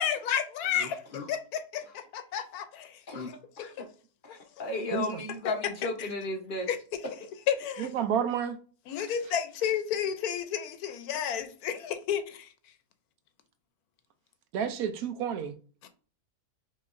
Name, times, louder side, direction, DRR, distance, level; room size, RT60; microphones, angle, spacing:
voice 1, 0.0-3.0 3.6-3.8 4.3-4.4 6.0-6.1 6.7-6.8 7.5-7.9 8.9-12.5 15.8-15.9, left 9 dB, 80° left, 1.1 m, -31 dB
voice 2, 0.8-1.3 3.1-3.3 3.6-3.7 4.2-6.7, left 2 dB, 40° left, 0.9 m, -34 dB
voice 3, 7.8-8.6 14.5-15.5, right 8 dB, 80° right, 1.0 m, -30 dB
5.7 x 3.1 x 2.5 m
omnidirectional pair, 1.6 m